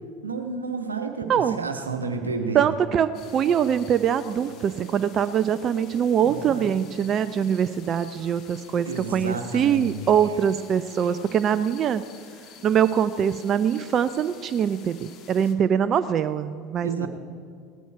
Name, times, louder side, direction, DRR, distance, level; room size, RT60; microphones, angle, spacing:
voice 1, 0.2-2.6 6.2-6.8 8.8-10.1 16.8-17.1, right 4 dB, 90° right, 6 dB, 1.1 m, -31 dB
Bowed string instrument, 2.0-7.5 8.6-8.7, right 8 dB, 65° right, 1.1 m, -45 dB
voice 2, 2.5-12.0 12.6-17.1, right 8 dB, 40° right, 13 dB, 0.5 m, -23 dB
sound 1, 3.1-15.5, left 7 dB, 50° left, 1.4 m, -49 dB
17.5 x 12.5 x 4.6 m, 2.2 s
figure-of-eight pair, 75°, 0 cm